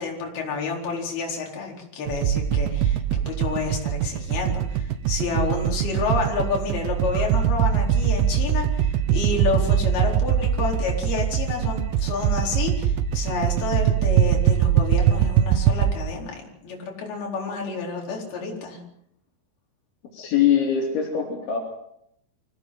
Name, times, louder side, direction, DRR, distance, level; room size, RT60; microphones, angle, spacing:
voice 1, 0.0-3.0 3.3-18.8, left 4 dB, 55° left, -1 dB, 6.1 m, -29 dB
sound 1, 2.1-15.9, right 9 dB, 90° right, 3.8 m, -22 dB
voice 2, 20.1-21.6, left 8 dB, 80° left, 1 dB, 5.8 m, -22 dB
25.0 x 16.5 x 7.7 m, 0.75 s
omnidirectional pair, 5.2 m